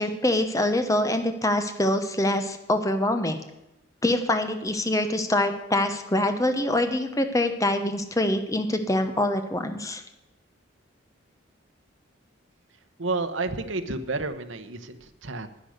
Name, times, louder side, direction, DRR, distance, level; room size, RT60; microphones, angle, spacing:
voice 1, 0.0-3.4 4.0-10.0, left 1 dB, 15° left, 7 dB, 1.0 m, -25 dB
voice 2, 13.0-15.5, right 3 dB, 75° right, 8 dB, 1.0 m, -30 dB
10.0 x 10.0 x 6.6 m, 0.92 s
head